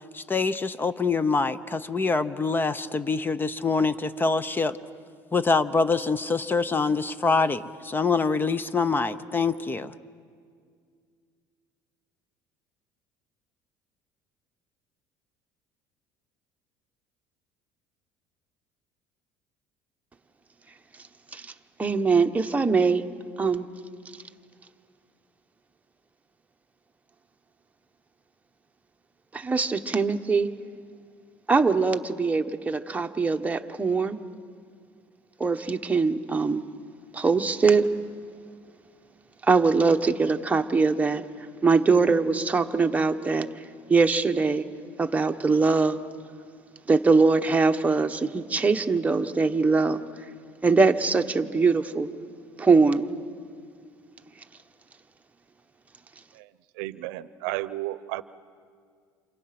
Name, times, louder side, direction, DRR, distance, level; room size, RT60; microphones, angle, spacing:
voice 1, 0.1-4.8 5.3-9.9, left 4 dB, 20° left, 15 dB, 0.8 m, -25 dB
voice 2, 21.8-23.0 23.4-23.7 29.3-30.5 31.5-34.2 35.4-36.7 37.1-37.9 39.4-41.2 41.6-43.5 43.9-44.6 45.0-46.0 46.9-50.0 50.6-52.1 52.6-53.1, right 4 dB, 15° right, 5 dB, 1.2 m, -22 dB
voice 3, 56.8-58.2, right 17 dB, 85° right, 16 dB, 0.7 m, -32 dB
29.5 x 28.5 x 6.0 m, 2.1 s
supercardioid pair, 105°, 10 cm